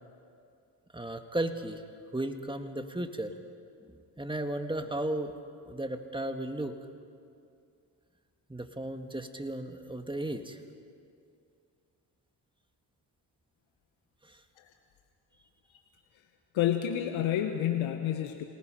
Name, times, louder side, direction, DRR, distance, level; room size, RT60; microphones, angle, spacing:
voice 1, 0.9-1.8 2.1-3.3 3.8-5.3 5.6-6.8 8.5-10.6 14.2-14.4, right 1 dB, 10° right, 6 dB, 1.8 m, -35 dB
voice 2, 16.5-18.4, left 11 dB, 90° left, 5 dB, 1.2 m, -29 dB
27.0 x 19.0 x 5.2 m, 2.4 s
supercardioid pair, 55°, 46 cm